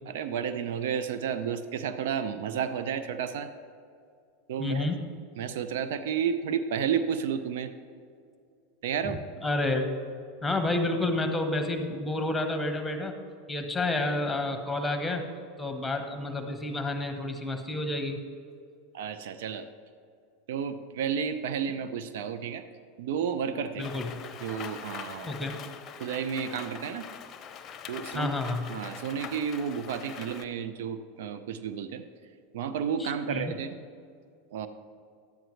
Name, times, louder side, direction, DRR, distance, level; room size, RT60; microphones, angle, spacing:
voice 1, 0.1-3.5 4.5-4.9 5.4-7.7 8.8-9.2 18.9-19.7 20.5-22.6 23.0-23.9 24.4-25.4 26.0-27.1 27.9-28.3 28.7-32.0 32.5-33.8 34.5-34.7, right 7 dB, 70° right, 11 dB, 0.5 m, -31 dB
voice 2, 4.6-5.0 9.4-10.0 10.4-13.1 13.5-15.2 15.6-18.2 23.8-24.2 25.2-25.6 28.1-28.7 33.0-33.6, left 2 dB, 10° left, 6 dB, 1.2 m, -30 dB
Rain, 23.8-30.4, left 8 dB, 40° left, 0.7 m, -43 dB
11.5 x 8.8 x 3.2 m, 2.4 s
hypercardioid pair, 95°, 0 cm